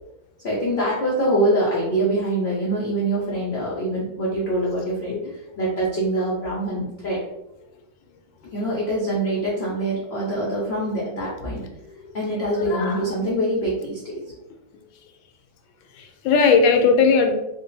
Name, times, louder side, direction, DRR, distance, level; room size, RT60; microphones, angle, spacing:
voice 1, 0.4-5.2 5.6-7.2 8.5-11.6 12.1-14.0, right 1 dB, 60° left, -5 dB, 0.6 m, -24 dB
voice 2, 12.5-13.0 15.9-17.3, left 5 dB, 80° left, 4 dB, 1.3 m, -19 dB
3.7 x 2.2 x 3.9 m, 0.89 s
omnidirectional pair, 2.1 m